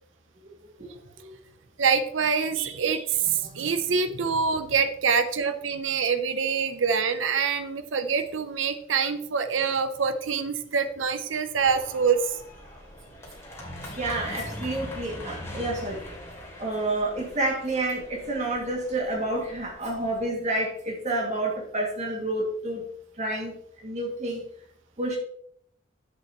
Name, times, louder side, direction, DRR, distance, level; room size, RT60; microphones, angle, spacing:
voice 1, 0.8-1.3 3.4-3.5 11.5-11.6 14.0-16.0 16.6-22.9 23.2-23.5 23.8-24.4 25.0-25.2, right 2 dB, 40° right, 0 dB, 2.4 m, -29 dB
voice 2, 1.8-12.2, right 6 dB, 80° right, 10 dB, 0.7 m, -25 dB
sound 1, 11.6-20.2, left 1 dB, 15° left, 2.8 m, -42 dB
11.0 x 7.7 x 3.1 m, 0.66 s
head